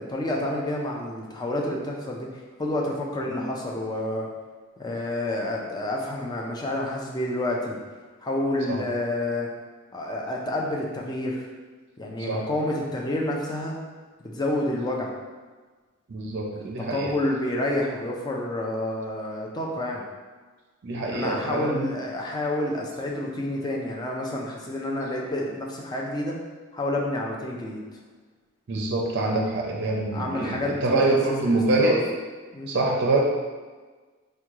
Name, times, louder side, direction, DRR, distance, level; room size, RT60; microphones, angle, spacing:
voice 1, 0.0-2.3 2.6-4.3 4.8-7.8 8.2-9.5 9.9-11.5 12.0-13.7 14.2-15.1 16.5-20.0 20.9-26.4 26.7-28.0 30.1-31.2 31.4-32.0 32.5-32.7, left 1 dB, 20° left, -1 dB, 0.4 m, -29 dB
voice 2, 16.1-17.1 20.8-21.9 28.7-32.0 32.7-33.2, right 2 dB, 55° right, -1 dB, 0.4 m, -25 dB
3.5 x 2.2 x 3.0 m, 1.4 s
head